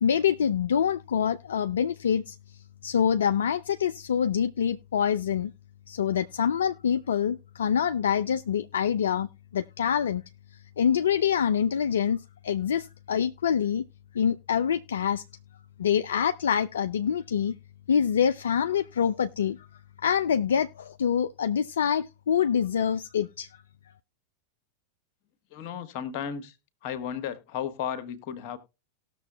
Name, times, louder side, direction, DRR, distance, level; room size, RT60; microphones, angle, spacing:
voice 1, 0.0-2.4 2.8-5.5 5.9-9.3 9.5-10.2 10.8-13.8 14.1-15.2 15.8-17.5 17.9-19.6 20.0-23.5, left 8 dB, 65° left, 0.3 m, -25 dB
voice 2, 25.5-26.6 26.8-28.6, left 8 dB, 45° left, 1.4 m, -34 dB
18.5 x 6.8 x 2.2 m
figure-of-eight pair, 90°, 0 cm